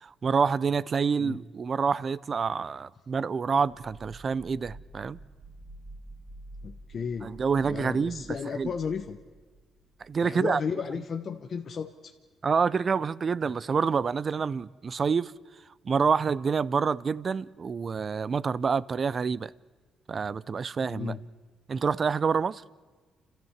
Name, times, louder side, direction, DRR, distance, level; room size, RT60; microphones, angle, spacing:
voice 1, 0.0-5.2 7.2-8.7 10.0-10.6 12.4-15.3 15.8-19.5 20.1-21.2 21.7-22.6, right 5 dB, 40° right, 0.5 m, -27 dB
sound 1, 3.7-10.4, right 1 dB, 20° right, 2.3 m, -49 dB
voice 2, 6.6-7.3 7.7-9.2 10.2-12.1 20.9-21.2, left 6 dB, 50° left, 1.0 m, -34 dB
30.0 x 13.5 x 7.3 m
cardioid pair, 90°, 0 cm